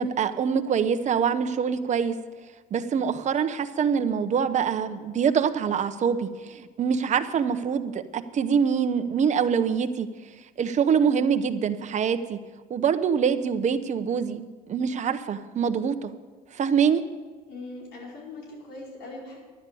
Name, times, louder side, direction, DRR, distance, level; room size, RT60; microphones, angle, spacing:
voice 1, 0.0-2.1 2.7-10.1 10.6-12.4 12.7-16.1 16.5-17.0, right 7 dB, 45° right, 9 dB, 0.9 m, -25 dB
voice 2, 17.5-19.4, left 2 dB, 85° left, -3 dB, 5.0 m, -40 dB
11.5 x 10.5 x 7.0 m, 1.4 s
cardioid pair, 110°, 17 cm